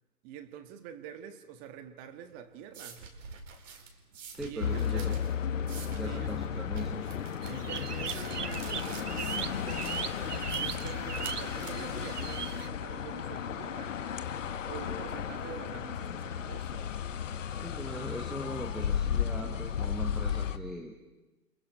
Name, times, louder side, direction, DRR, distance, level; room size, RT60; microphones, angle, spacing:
voice 1, 0.2-3.1 4.4-5.2 6.0-6.3 7.4-9.9 10.3-14.0 14.6-16.9, right 8 dB, 20° right, 1.4 m, -46 dB
sound 1, 2.2-13.6, right 5 dB, 50° right, 4.6 m, -47 dB
voice 2, 4.4-5.1 5.9-7.1 17.6-20.9, right 1 dB, ahead, 0.9 m, -40 dB
sound 2, 4.6-20.6, left 8 dB, 55° left, 1.5 m, -34 dB
sound 3, 7.4-12.7, right 8 dB, 75° right, 0.8 m, -39 dB
30.0 x 26.5 x 5.5 m
figure-of-eight pair, 140°, 47 cm